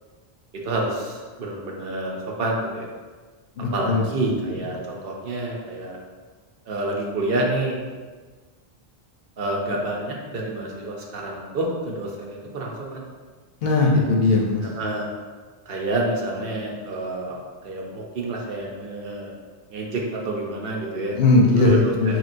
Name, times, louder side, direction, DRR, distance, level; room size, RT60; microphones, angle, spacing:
voice 1, 0.6-2.9 3.7-6.0 6.7-7.7 9.4-13.1 14.7-15.1 15.7-19.3 19.7-21.2 21.5-22.2, right 2 dB, 65° right, -1 dB, 0.9 m, -28 dB
voice 2, 3.6-4.0 13.6-14.6 21.1-22.2, left 3 dB, 70° left, -1 dB, 0.8 m, -18 dB
4.3 x 3.3 x 2.5 m, 1.4 s
omnidirectional pair, 1.1 m